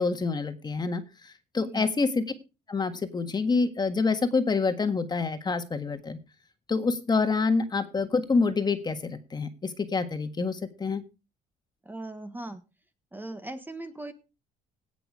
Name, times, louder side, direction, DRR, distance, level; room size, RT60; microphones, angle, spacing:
voice 1, 0.0-2.2 2.7-6.2 6.7-11.0, left 4 dB, 25° left, 9 dB, 1.6 m, -27 dB
voice 2, 1.5-1.9 11.8-12.6 13.1-14.1, right 2 dB, 10° right, 9 dB, 1.3 m, -39 dB
17.0 x 6.1 x 4.9 m, 0.30 s
cardioid pair, 110°, 17 cm